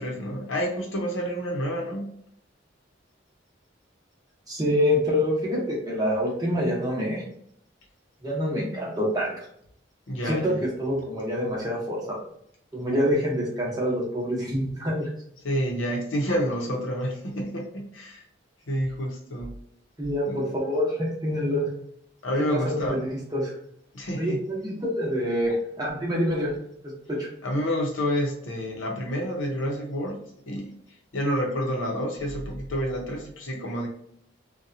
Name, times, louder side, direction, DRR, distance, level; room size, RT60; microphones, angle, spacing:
voice 1, 0.0-2.1 10.1-10.6 15.4-18.2 18.7-19.6 20.3-20.5 22.2-23.0 23.9-24.4 27.4-30.8 31.1-33.9, equal, 90° left, 1 dB, 0.7 m, -29 dB
voice 2, 4.5-7.2 8.2-9.3 10.3-12.2 12.7-15.1 20.0-21.7 22.6-23.5 24.2-26.5 27.1-27.3, equal, 20° right, -4 dB, 0.8 m, -26 dB
2.7 x 2.2 x 2.5 m, 0.68 s
head